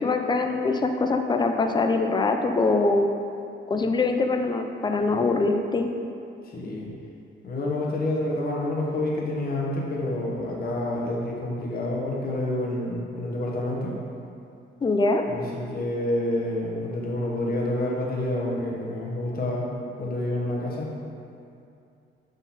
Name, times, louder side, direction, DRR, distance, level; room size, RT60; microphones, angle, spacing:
voice 1, 0.0-3.1 3.7-5.9 14.8-15.2, left 3 dB, 20° left, 5 dB, 0.4 m, -23 dB
voice 2, 6.5-6.9 7.4-14.0 15.3-19.7 20.0-20.9, left 1 dB, 50° left, -3 dB, 1.2 m, -28 dB
5.7 x 3.9 x 4.2 m, 2.5 s
cardioid pair, 90°, 20 cm